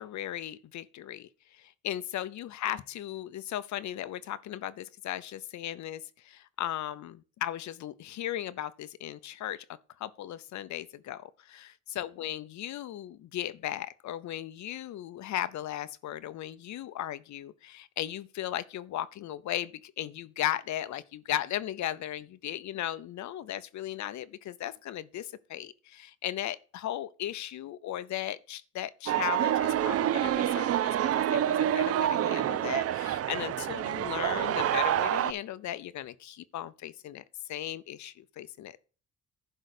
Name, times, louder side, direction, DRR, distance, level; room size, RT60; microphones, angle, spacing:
voice 1, 0.0-9.6 10.0-37.2 37.5-38.8, left 12 dB, 70° left, 0.7 m, -37 dB
sound 1, 29.1-35.3, right 11 dB, 55° right, 0.5 m, -27 dB
11.0 x 3.9 x 6.5 m
cardioid pair, 90°, 30 cm